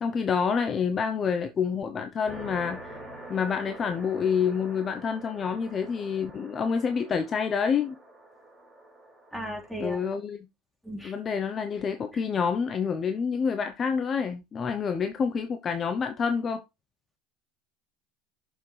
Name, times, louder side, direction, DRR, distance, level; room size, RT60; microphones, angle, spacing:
voice 1, 0.0-3.0 3.3-8.0 9.8-10.5 11.0-16.6, left 6 dB, 30° left, 0.7 m, -28 dB
sound 1, 2.3-9.9, right 1 dB, 15° right, 4.3 m, -46 dB
voice 2, 9.3-10.0 10.8-11.1, equal, ahead, 2.9 m, -35 dB
6.9 x 6.2 x 3.3 m
supercardioid pair, 120°, 0 cm